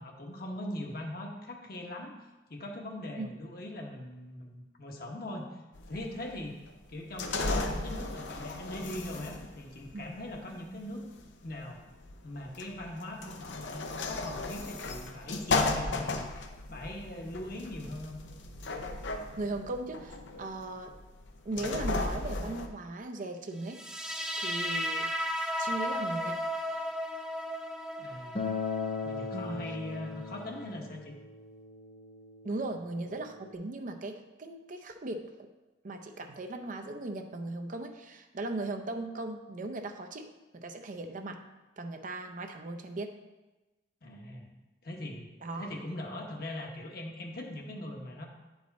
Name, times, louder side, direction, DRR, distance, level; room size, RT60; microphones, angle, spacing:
voice 1, 0.0-2.1 2.5-5.6 5.9-6.6 6.9-11.0 11.4-11.8 12.2-16.3 16.7-18.2 28.0-28.5 29.0-31.1 44.0-44.5 44.8-45.3 45.6-48.3, left 1 dB, 55° left, 1 dB, 1.2 m, -41 dB
sound 1, 5.7-22.7, left 3 dB, 90° left, 0.7 m, -35 dB
voice 2, 19.4-20.9 21.4-24.1 24.4-26.4 29.3-29.6 32.4-35.5 35.8-41.4 41.8-43.2 45.4-45.7, right 2 dB, 45° right, 6 dB, 0.6 m, -38 dB
sound 2, 23.7-30.7, equal, 5° right, 0.7 m, -35 dB
Acoustic guitar, 28.3-33.5, left 5 dB, 35° left, 0.6 m, -38 dB
9.3 x 4.7 x 4.1 m, 1.1 s
head